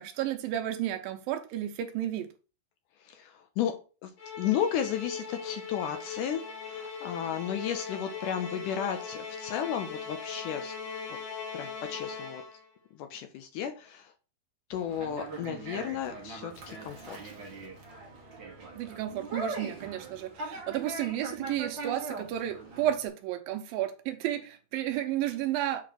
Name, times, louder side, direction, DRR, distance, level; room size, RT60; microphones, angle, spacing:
voice 1, 0.0-2.3 18.8-25.8, right 12 dB, 80° right, 2.5 m, -32 dB
voice 2, 3.0-3.8 4.0-4.1 4.4-10.8 11.5-12.4 13.0-14.1 14.7-17.2, left 9 dB, 75° left, 2.0 m, -33 dB
Musical instrument, 4.2-12.7, left 5 dB, 60° left, 1.4 m, -40 dB
Conversation, 14.7-23.1, right 3 dB, 50° right, 1.5 m, -41 dB
7.3 x 3.2 x 5.9 m
omnidirectional pair, 4.2 m